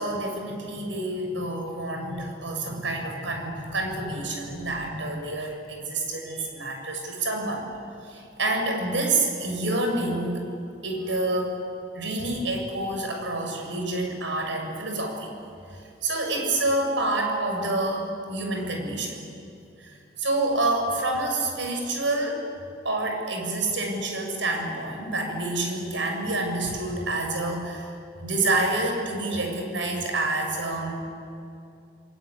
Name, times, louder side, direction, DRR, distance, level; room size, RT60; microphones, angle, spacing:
voice 1, 0.0-7.6 8.1-10.5 10.8-11.6 11.9-15.3 15.7-19.2 19.8-22.4 22.8-27.9 28.2-31.0, right 2 dB, 75° right, 3 dB, 6.5 m, -28 dB
28.5 x 21.5 x 9.7 m, 2.6 s
head